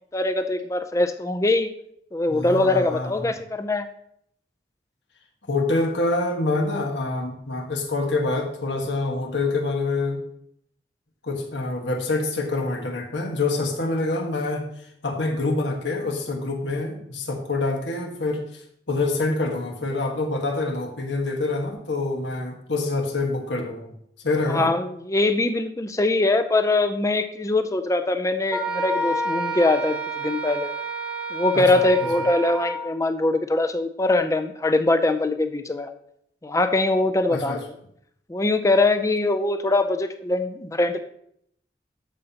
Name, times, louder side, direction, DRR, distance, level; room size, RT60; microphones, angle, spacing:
voice 1, 0.1-1.7 2.1-3.9 24.5-30.7 31.3-35.9 36.4-37.7 38.3-41.0, left 2 dB, 15° left, 8 dB, 0.5 m, -22 dB
voice 2, 2.3-3.3 5.5-10.2 11.2-14.7 15.0-18.6 18.9-23.9 24.2-24.7 31.5-31.8 37.3-37.6, left 2 dB, 80° left, 2 dB, 1.4 m, -26 dB
Wind instrument woodwind instrument, 28.5-32.9, right 2 dB, 5° right, 0.8 m, -29 dB
13.0 x 5.4 x 2.9 m, 0.70 s
head